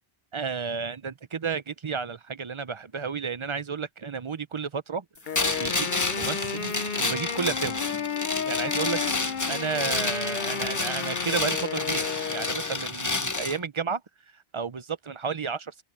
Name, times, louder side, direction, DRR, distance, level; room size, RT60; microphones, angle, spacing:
voice 1, 0.3-6.7 7.0-7.8 8.5-14.0 14.3-15.8, right 5 dB, 35° right, 0.6 m, -32 dB
Wind instrument woodwind instrument, 5.3-12.9, left 7 dB, 55° left, 0.9 m, -33 dB
Mysounds LG-FR Marcel -metal chain, 5.3-13.6, left 3 dB, 20° left, 0.7 m, -30 dB
open air
omnidirectional pair, 1.0 m